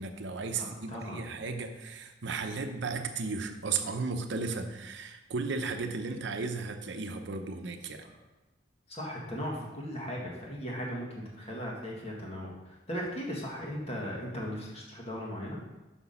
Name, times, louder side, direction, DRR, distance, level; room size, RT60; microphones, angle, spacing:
voice 1, 0.0-8.0, right 4 dB, 65° right, 6 dB, 0.7 m, -35 dB
voice 2, 0.5-1.2 8.9-15.6, equal, 35° left, -2 dB, 1.7 m, -37 dB
6.0 x 5.9 x 5.6 m, 1.1 s
head